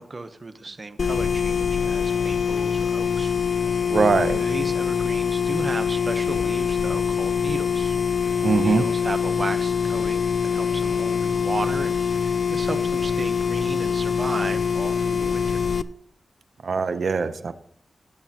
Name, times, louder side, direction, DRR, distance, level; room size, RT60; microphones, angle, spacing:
voice 1, 0.0-3.3 3.7-3.9 4.4-8.0 8.5-15.6, right 3 dB, 35° right, 9 dB, 1.0 m, -34 dB
sound 1, 1.0-15.8, left 6 dB, 60° left, 0.5 m, -24 dB
voice 2, 3.9-4.4 8.4-8.8 16.6-17.5, right 4 dB, 60° right, 11 dB, 0.8 m, -21 dB
17.5 x 8.2 x 2.9 m, 0.62 s
wide cardioid pair, 125°, 0 cm